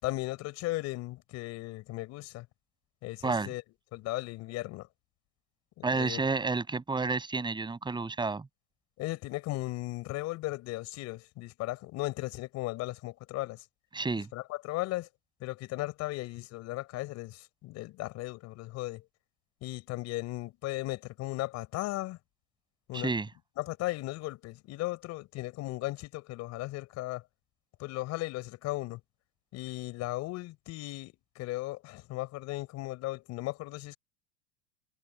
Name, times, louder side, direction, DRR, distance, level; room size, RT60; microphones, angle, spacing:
voice 1, 0.0-2.5 3.0-3.6 3.9-4.9 5.8-6.2 9.0-13.7 14.3-15.1 15.4-19.1 19.6-22.2 22.9-23.1 23.6-27.2 27.8-29.0 29.5-34.0, left 19 dB, 50° left, 5.1 m, -36 dB
voice 2, 5.8-8.5 13.9-14.3 22.9-23.3, right 4 dB, 15° right, 7.3 m, -30 dB
supercardioid pair, 120°, 35 cm